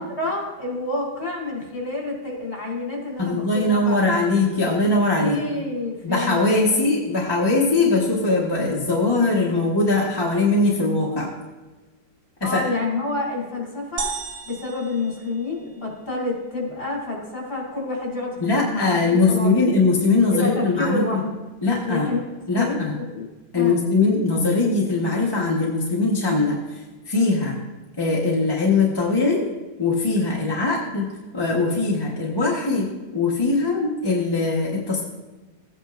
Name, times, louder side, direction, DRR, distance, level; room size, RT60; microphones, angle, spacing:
voice 1, 0.0-4.0 5.2-6.4 6.7-6.9 12.4-14.1 14.5-19.6 20.3-21.4 21.8-22.2 22.5-23.3 23.5-23.8, left 3 dB, 30° left, -3 dB, 3.7 m, -28 dB
voice 2, 3.2-5.4 6.0-11.3 12.4-12.7 18.4-21.2 21.6-22.1 22.5-22.9 23.5-27.6 28.0-29.4 29.8-35.0, left 3 dB, 15° left, -4 dB, 1.1 m, -21 dB
sound 1, 14.0-15.9, right 4 dB, 80° right, 1.5 m, -33 dB
16.0 x 8.9 x 2.5 m, 1.2 s
omnidirectional pair, 1.8 m